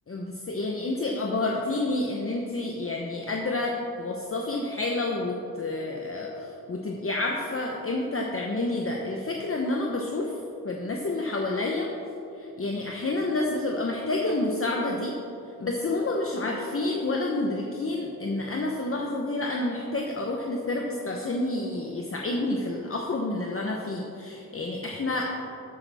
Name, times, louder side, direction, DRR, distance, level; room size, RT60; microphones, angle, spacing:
voice 1, 0.1-10.3 10.6-11.9 12.4-15.1 15.6-25.3, left 2 dB, 35° left, 0 dB, 0.8 m, -29 dB
12.5 x 8.4 x 3.4 m, 2.8 s
wide cardioid pair, 115°, 37 cm